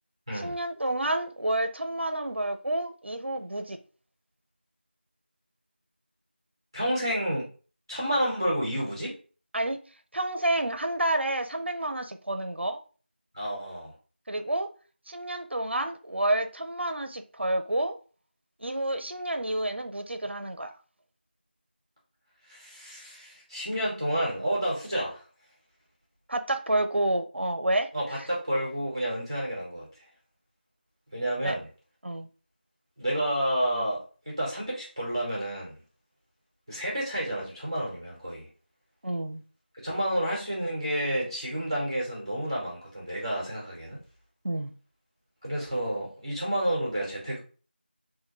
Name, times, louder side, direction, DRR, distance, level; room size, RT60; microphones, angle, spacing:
voice 1, 0.4-3.8 9.5-9.8 10.1-12.8 14.3-14.7 15.1-18.0 18.6-20.7 26.3-27.9 31.4-31.6 32.0-32.3 39.0-39.4 44.4-44.7, right 1 dB, 85° right, 0.5 m, -29 dB
voice 2, 6.7-7.5 7.9-9.1 13.3-13.9 22.4-25.3 27.9-30.1 31.1-31.7 33.0-35.8 36.7-38.5 39.8-44.0 45.4-47.4, equal, 25° right, 1.1 m, -30 dB
3.2 x 2.2 x 3.0 m
figure-of-eight pair, 180°, 6 cm